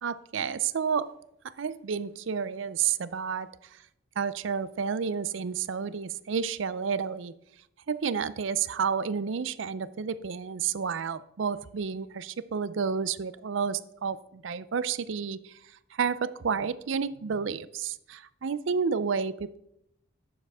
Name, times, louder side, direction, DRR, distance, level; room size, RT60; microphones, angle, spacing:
voice 1, 0.0-1.1 1.6-3.5 4.2-7.3 7.9-15.5 16.0-19.6, right 6 dB, 70° right, 16 dB, 0.5 m, -30 dB
11.0 x 7.2 x 3.5 m, 0.79 s
head